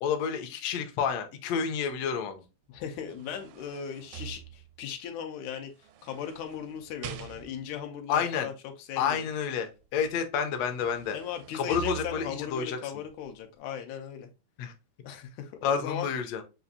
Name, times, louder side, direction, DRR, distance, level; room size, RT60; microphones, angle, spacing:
voice 1, 0.0-2.4 8.1-8.5 9.0-11.2 11.5-13.0 14.6-14.7 15.6-16.4, left 7 dB, 75° left, 6 dB, 1.7 m, -30 dB
voice 2, 2.7-5.7 6.0-8.5 8.8-9.2 11.1-14.3 15.0-16.1, left 8 dB, 90° left, 4 dB, 2.1 m, -38 dB
sound 1, 2.8-5.0 5.8-7.8 10.1-10.2 10.6-12.6 13.1-13.2, right 11 dB, 80° right, 1.6 m, -45 dB
6.9 x 2.5 x 2.6 m, 0.28 s
omnidirectional pair, 3.3 m